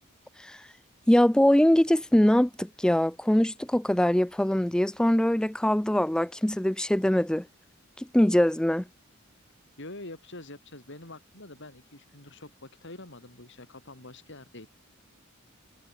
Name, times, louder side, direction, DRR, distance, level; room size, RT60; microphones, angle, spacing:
voice 1, 1.1-7.5 8.0-8.8, left 1 dB, 5° left, 0.3 m, -23 dB
voice 2, 9.8-14.7, left 2 dB, 60° left, 6.1 m, -45 dB
head